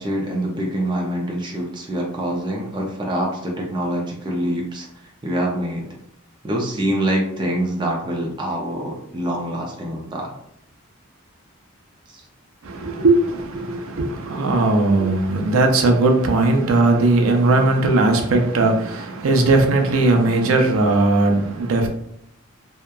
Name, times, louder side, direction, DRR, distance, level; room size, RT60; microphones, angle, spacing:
voice 1, 0.0-4.9 5.2-5.9 6.4-10.3, right 1 dB, 20° right, -1 dB, 0.4 m, -25 dB
voice 2, 12.6-21.9, right 2 dB, 85° right, 3 dB, 0.5 m, -18 dB
2.8 x 2.1 x 2.3 m, 0.72 s
head